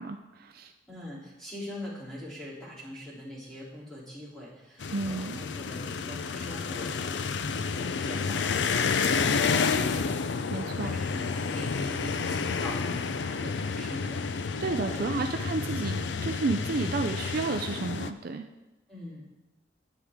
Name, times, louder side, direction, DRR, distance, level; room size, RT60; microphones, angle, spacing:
voice 1, 0.0-0.7 4.9-5.4 10.5-10.9 14.6-18.5, right 3 dB, 55° right, 6 dB, 0.5 m, -31 dB
voice 2, 0.9-15.1 18.9-19.2, left 1 dB, 5° left, -7 dB, 3.3 m, -43 dB
sound 1, 4.8-18.1, left 5 dB, 70° left, 0.5 m, -30 dB
10.0 x 9.2 x 3.7 m, 1.0 s
head